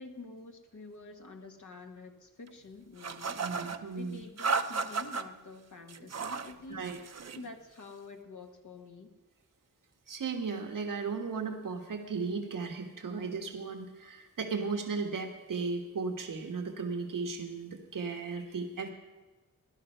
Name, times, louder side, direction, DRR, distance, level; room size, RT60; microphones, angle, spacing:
voice 1, 0.0-3.4 3.9-6.9 7.4-9.1, left 3 dB, 65° left, 2 dB, 1.8 m, -48 dB
sound 1, 3.0-3.8 4.4-5.2 5.9-6.5 6.8-7.4, right 4 dB, 55° right, 0.8 m, -34 dB
voice 2, 3.4-4.2 6.7-7.0 10.1-18.9, right 4 dB, 85° right, 3 dB, 1.6 m, -36 dB
18.0 x 11.0 x 5.6 m, 1.2 s
cardioid pair, 65°, 32 cm